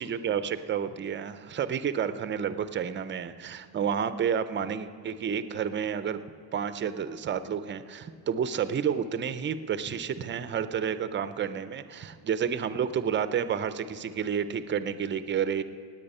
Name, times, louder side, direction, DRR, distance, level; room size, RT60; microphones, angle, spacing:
voice 1, 0.0-6.2 6.5-15.6, right 7 dB, 25° right, 12 dB, 0.4 m, -30 dB
17.5 x 9.0 x 5.4 m, 2.5 s
cardioid pair, 145°, 46 cm